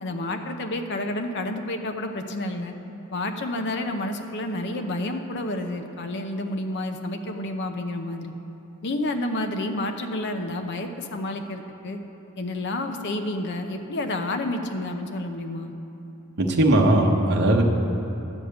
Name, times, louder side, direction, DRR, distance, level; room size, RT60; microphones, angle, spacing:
voice 1, 0.0-2.7 3.1-8.3 8.8-12.0 12.4-15.7, left 1 dB, 55° left, 5 dB, 0.7 m, -30 dB
voice 2, 16.4-17.6, right 1 dB, 55° right, 0 dB, 0.9 m, -19 dB
11.5 x 5.1 x 8.0 m, 2.9 s
head